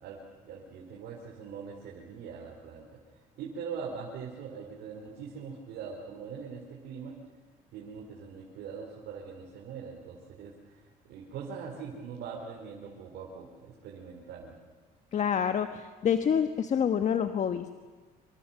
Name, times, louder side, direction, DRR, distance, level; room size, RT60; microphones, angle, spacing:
voice 1, 0.0-2.9 3.4-7.1 7.7-10.8 11.1-14.5, right 6 dB, 80° right, -2 dB, 4.7 m, -42 dB
voice 2, 15.1-17.7, left 8 dB, 45° left, 8 dB, 1.3 m, -27 dB
26.5 x 26.0 x 7.4 m, 1.4 s
cardioid pair, 110°, 17 cm